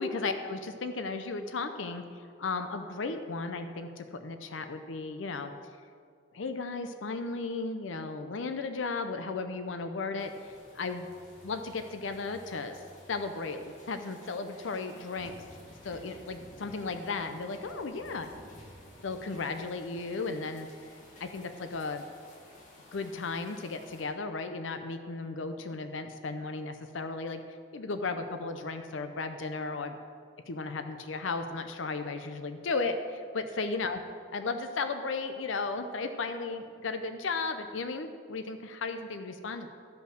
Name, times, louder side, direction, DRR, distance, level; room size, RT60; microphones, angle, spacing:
voice 1, 0.0-5.5 6.3-11.1 11.4-12.8 13.1-15.4 15.8-18.3 19.0-20.7 21.2-22.0 22.9-27.4 27.7-30.0 30.5-34.0 34.3-39.7, left 3 dB, 80° left, 8 dB, 0.6 m, -35 dB
sound 1, 10.2-24.0, left 1 dB, 40° left, 2.0 m, -54 dB
12.5 x 5.5 x 6.4 m, 2.2 s
head